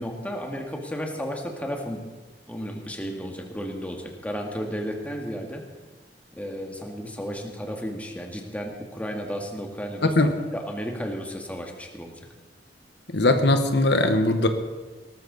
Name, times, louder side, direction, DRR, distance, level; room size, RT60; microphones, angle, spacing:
voice 1, 0.0-2.0 2.5-5.6 6.3-10.1 10.5-12.1, equal, 10° left, 2 dB, 1.8 m, -33 dB
voice 2, 10.0-10.3 13.1-14.5, left 2 dB, 70° left, 7 dB, 1.2 m, -20 dB
18.5 x 13.5 x 4.0 m, 1.3 s
head